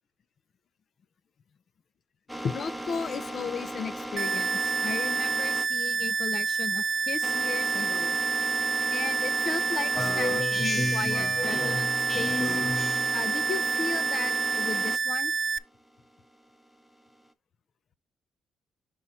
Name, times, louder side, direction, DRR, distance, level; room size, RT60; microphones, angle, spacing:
sound 1, 2.3-10.4 10.7-15.0 15.5-17.3, right 1 dB, ahead, 0.8 m, -38 dB
voice 1, 2.4-8.2 8.9-11.9 12.1-12.6 13.1-15.3, left 6 dB, 55° left, 0.5 m, -35 dB
sound 2, 4.2-15.6, right 5 dB, 45° right, 0.4 m, -28 dB
Speech synthesizer, 9.9-13.3, left 2 dB, 35° left, 1.5 m, -31 dB
6.2 x 4.4 x 4.0 m
cardioid pair, 90°, 0 cm